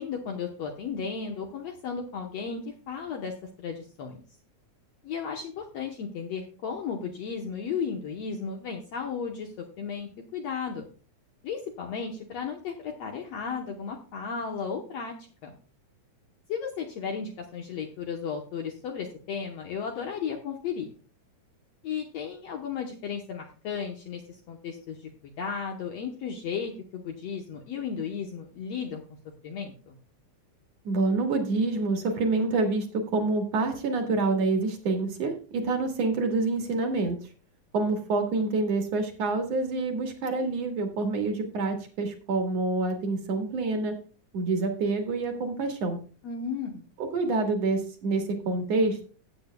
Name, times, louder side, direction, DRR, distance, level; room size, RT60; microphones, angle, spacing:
voice 1, 0.0-3.3 3.6-4.2 5.0-9.5 9.8-10.8 11.4-15.1 15.4-15.6 16.5-20.9 21.8-29.0 29.4-30.0 46.2-46.9, left 6 dB, 65° left, 2 dB, 2.0 m, -34 dB
voice 2, 30.8-37.2 37.7-44.0 44.3-46.0 47.0-49.0, right 3 dB, 60° right, 4 dB, 2.6 m, -27 dB
15.0 x 8.5 x 2.2 m, 0.38 s
omnidirectional pair, 3.5 m